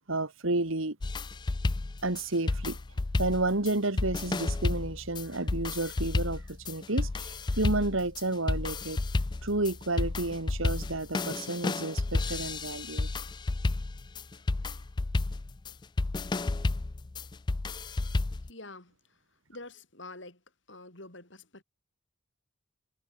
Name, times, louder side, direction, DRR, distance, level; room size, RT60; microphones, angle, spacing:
voice 1, 0.1-1.0 2.0-2.8 3.2-9.0 9.4-13.1, right 2 dB, 70° right, 2.3 m, -31 dB
sound 1, 1.0-18.5, left 2 dB, 20° left, 0.4 m, -31 dB
voice 2, 18.4-19.2 19.5-20.4 20.7-21.6, left 2 dB, 60° left, 6.0 m, -47 dB
head